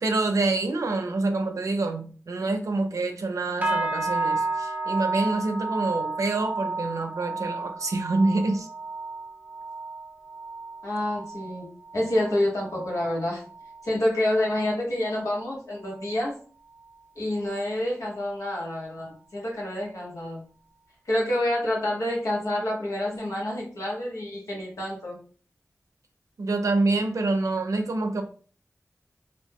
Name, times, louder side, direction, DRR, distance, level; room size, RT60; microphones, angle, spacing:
voice 1, 0.0-8.7 26.4-28.2, right 2 dB, 85° right, 6 dB, 0.5 m, -26 dB
sound 1, 3.6-13.2 13.5-13.9 14.3-14.6 15.2-15.3, right 3 dB, 25° right, 0.7 m, -32 dB
voice 2, 10.8-13.4 13.8-16.3 17.1-20.4 21.0-25.2, left 1 dB, 85° left, -3 dB, 1.1 m, -28 dB
2.6 x 2.2 x 3.3 m, 0.41 s
wide cardioid pair, 60°, 5 cm